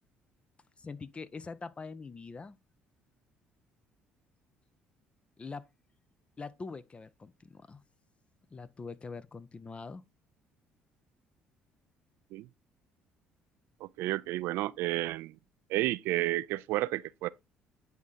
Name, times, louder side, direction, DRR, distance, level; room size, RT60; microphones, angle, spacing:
voice 1, 0.8-2.6 5.4-5.7 6.4-7.8 8.5-10.0, left 4 dB, 30° left, 0.6 m, -43 dB
voice 2, 13.8-15.4 15.7-17.3, right 17 dB, 75° right, 0.3 m, -31 dB
9.4 x 3.7 x 4.0 m
supercardioid pair, 65°, 4 cm